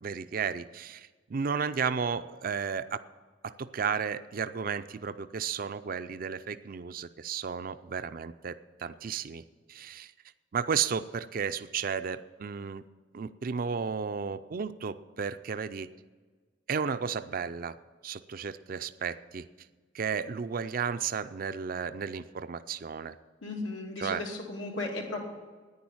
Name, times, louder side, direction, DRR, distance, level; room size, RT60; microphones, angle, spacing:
voice 1, 0.0-3.0 3.4-8.5 8.8-9.4 9.7-10.1 10.5-12.8 13.1-15.9 16.7-17.7 18.0-19.5 19.9-23.1 24.0-24.2, right 6 dB, 50° right, 12 dB, 0.4 m, -33 dB
voice 2, 23.4-25.2, left 2 dB, 90° left, -1 dB, 2.7 m, -35 dB
10.5 x 9.7 x 8.6 m, 1.4 s
head